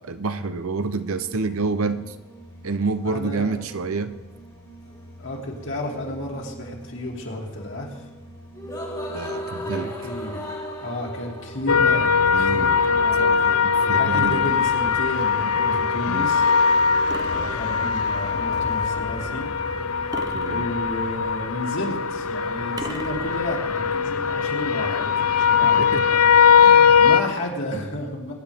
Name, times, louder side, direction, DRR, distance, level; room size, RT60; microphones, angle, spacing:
voice 1, 0.0-2.1 2.6-4.1 9.1-9.9 12.3-12.8 13.2-14.5 15.6-16.3 20.3-20.7 25.6-26.1 26.6-27.0, right 3 dB, 70° right, 11 dB, 0.7 m, -28 dB
sound 1, 0.8-20.3, equal, 15° left, 1.9 m, -39 dB
voice 2, 3.0-3.6 5.2-7.9 9.6-10.4 10.8-13.3 13.8-16.4 17.3-19.5 20.5-25.1 25.4-26.2 27.0-28.3, left 1 dB, 60° left, -1 dB, 2.7 m, -31 dB
sound 2, 11.7-27.2, left 6 dB, 80° left, 0.6 m, -20 dB
sound 3, 14.1-15.2 17.1-18.2 20.1-21.2 22.8-23.8, right 2 dB, 15° right, 0.5 m, -38 dB
22.5 x 9.9 x 3.5 m, 1.1 s
head